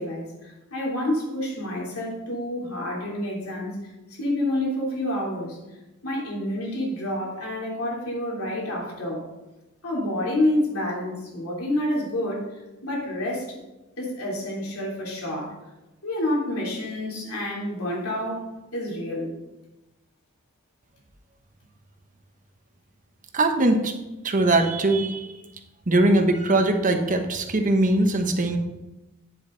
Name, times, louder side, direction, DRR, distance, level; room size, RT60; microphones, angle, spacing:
voice 1, 0.0-3.9 4.2-5.6 6.0-9.2 9.8-12.5 12.8-13.6 14.0-15.6 16.0-19.3, left 1 dB, 90° left, -3 dB, 3.4 m, -28 dB
voice 2, 23.3-23.9 24.2-25.4 25.9-28.6, right 2 dB, 40° right, 6 dB, 1.0 m, -21 dB
9.7 x 7.3 x 3.9 m, 1.0 s
head